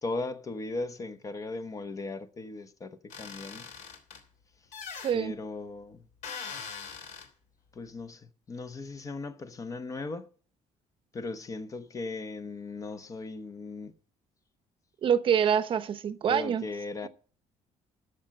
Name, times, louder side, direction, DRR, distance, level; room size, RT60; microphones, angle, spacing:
voice 1, 0.0-3.6 5.1-6.1 7.7-10.3 11.1-13.9 16.3-17.1, left 3 dB, 25° left, 0.8 m, -37 dB
sound 1, 3.1-4.2 4.7-5.1 6.2-7.3, left 6 dB, 65° left, 3.0 m, -41 dB
voice 2, 15.0-16.6, right 8 dB, 40° right, 0.8 m, -25 dB
13.0 x 6.4 x 7.4 m
cardioid pair, 175°, 13 cm